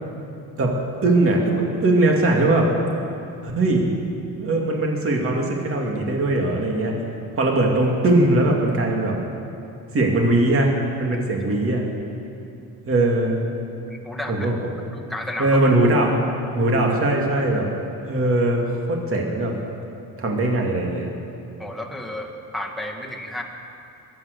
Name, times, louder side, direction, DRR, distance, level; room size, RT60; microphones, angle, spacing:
voice 1, 1.0-2.7 3.4-3.8 4.4-6.9 7.3-9.1 9.9-10.7 11.0-11.8 12.9-13.4 14.3-14.6 15.4-16.1 16.5-17.7 18.1-18.6 18.9-19.6 20.2-21.1, right 2 dB, 40° right, 0 dB, 2.5 m, -20 dB
voice 2, 13.9-14.5 14.9-15.6 21.6-23.4, left 1 dB, ahead, -1 dB, 1.7 m, -32 dB
22.5 x 9.0 x 6.8 m, 2.6 s
cardioid pair, 135°, 34 cm